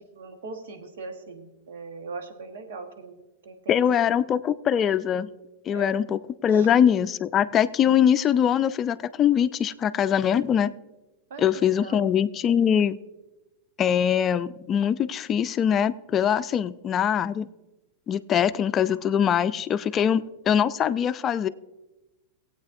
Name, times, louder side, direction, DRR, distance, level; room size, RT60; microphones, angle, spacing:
voice 1, 0.2-3.1 3.4-4.2 5.7-6.0 6.5-6.7 11.3-12.0 19.9-20.1, right 4 dB, 75° right, 6 dB, 1.3 m, -40 dB
voice 2, 3.7-5.3 5.7-10.7 11.4-13.0 13.8-17.5 18.1-21.5, left 8 dB, 30° left, 14 dB, 0.4 m, -22 dB
18.5 x 8.5 x 2.6 m, 1.0 s
hypercardioid pair, 105°, 0 cm